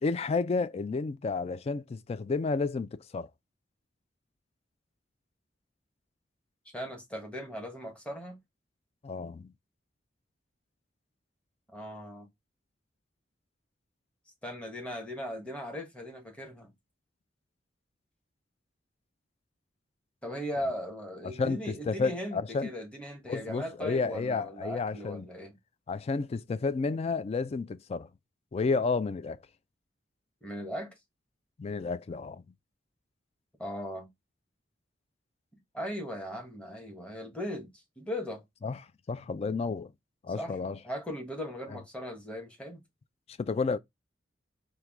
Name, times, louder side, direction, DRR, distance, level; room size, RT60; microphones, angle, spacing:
voice 1, 0.0-3.3 9.0-9.5 21.2-22.7 23.3-25.3 25.9-28.1 28.5-29.4 31.6-32.4 38.6-38.8 39.1-39.9 40.2-40.8 41.7-41.8 43.4-43.8, left 4 dB, 35° left, 0.3 m, -31 dB
voice 2, 6.7-8.4 11.7-12.3 14.4-16.7 20.2-25.5 30.4-30.9 33.6-34.1 35.7-37.7 38.0-38.4 40.4-42.8, equal, 5° left, 1.1 m, -38 dB
4.5 x 2.2 x 3.5 m
head